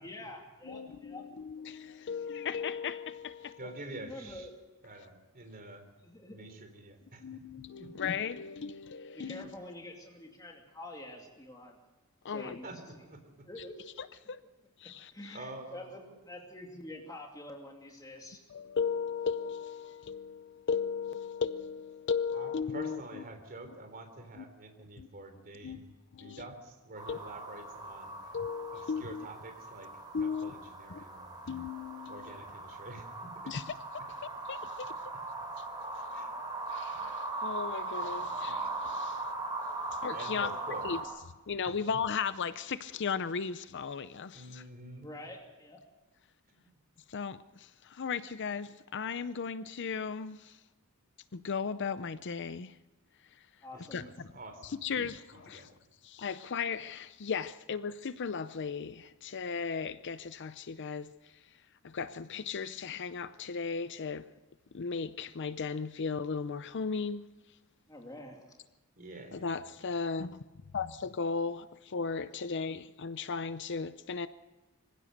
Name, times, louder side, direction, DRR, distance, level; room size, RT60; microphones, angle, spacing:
voice 1, 0.0-1.2 3.6-4.5 6.0-6.4 9.1-11.8 12.3-12.7 13.5-13.9 15.1-18.4 45.0-45.8 53.6-54.1 67.9-68.4, left 1 dB, 15° left, 2.6 m, -47 dB
voice 2, 0.6-3.6 7.2-9.5 12.2-12.6 13.6-13.7 14.0-14.4 14.8-15.4 18.5-23.0 24.4-24.5 25.0-25.1 25.6-25.8 26.1-26.4 27.1-27.2 28.3-29.3 30.1-30.6 30.9-31.0 31.5-32.3 33.5-33.8 34.1-34.2 34.5-34.9 35.6-35.7 36.7-39.3 39.9-40.5 40.8-41.0 41.5-44.6 47.1-50.6 51.3-52.8 53.3-53.5 53.9-54.3 54.6-55.7 56.0-61.5 61.8-64.3 64.7-67.2 69.3-70.4 70.7-74.3, left 5 dB, 55° left, 0.6 m, -36 dB
voice 3, 3.6-4.5 4.8-5.9 6.3-7.4 7.8-7.9 12.6-13.5 15.3-16.2 22.3-25.9 26.2-28.1 28.7-29.9 30.2-31.4 32.1-33.3 35.9-36.3 39.0-39.1 40.1-41.0 41.6-41.7 44.3-45.1 46.5-46.7 53.7-54.9 55.5-55.8 69.0-69.6, right 2 dB, 45° right, 3.6 m, -47 dB
sound 1, 27.0-41.0, right 2 dB, 20° right, 5.7 m, -39 dB
24.5 x 16.0 x 6.6 m
head